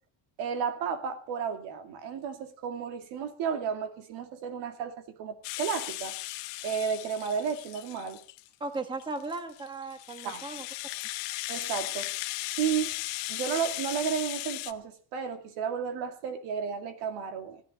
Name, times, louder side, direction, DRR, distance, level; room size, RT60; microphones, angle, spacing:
voice 1, 0.4-6.1 6.6-8.2 10.2-10.4 11.5-12.1 12.6-13.0 13.3-17.6, right 7 dB, 70° right, 2.4 m, -33 dB
Rattle (instrument), 5.4-8.5 9.0-14.7, left 20 dB, 75° left, 1.0 m, -37 dB
voice 2, 8.6-10.7, right 3 dB, 10° right, 1.3 m, -36 dB
17.0 x 11.0 x 5.3 m
cardioid pair, 155°, 43 cm